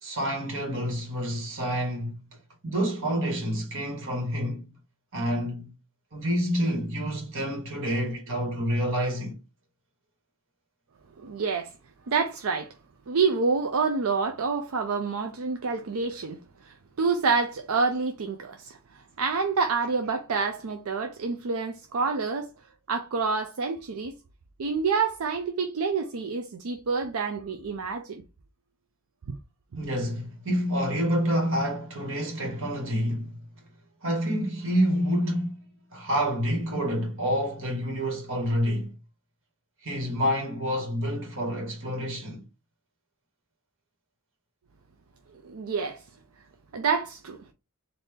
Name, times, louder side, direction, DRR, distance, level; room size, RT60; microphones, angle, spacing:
voice 1, 0.0-2.2 2.6-4.6 5.1-5.7 6.1-9.4 29.8-33.4 34.0-35.6 35.9-38.9 39.8-42.4, equal, 65° right, 1.8 m, -28 dB
voice 2, 11.2-11.7 12.1-12.7 13.1-16.4 16.7-18.8 19.2-22.5 22.9-24.1 24.6-28.2 45.4-46.0 46.7-47.4, right 4 dB, 85° right, 0.5 m, -27 dB
4.2 x 2.7 x 3.5 m
head